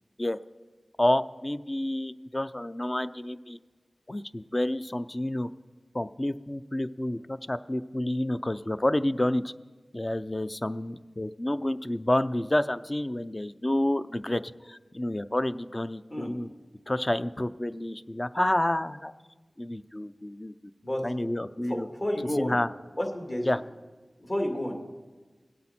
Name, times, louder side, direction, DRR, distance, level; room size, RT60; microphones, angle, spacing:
voice 1, 1.0-3.6 4.1-5.5 5.9-9.5 9.9-16.5 16.9-19.1 19.6-20.5 21.0-21.9 22.4-22.7 23.4-23.6, left 1 dB, 30° left, 12 dB, 0.4 m, -29 dB
voice 2, 21.6-22.6 23.0-23.5 24.2-24.9, left 1 dB, 45° left, 2 dB, 2.1 m, -31 dB
19.5 x 8.6 x 4.3 m, 1.3 s
cardioid pair, 40°, 0 cm